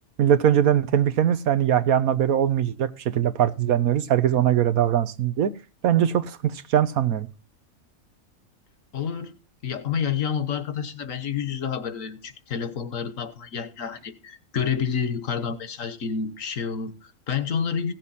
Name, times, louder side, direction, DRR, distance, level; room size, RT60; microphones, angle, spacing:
voice 1, 0.2-5.5 5.8-7.3, right 10 dB, 85° right, 1.4 m, -21 dB
voice 2, 8.9-9.3 9.6-17.9, left 7 dB, 70° left, 1.5 m, -29 dB
16.5 x 7.4 x 4.2 m
omnidirectional pair, 1.5 m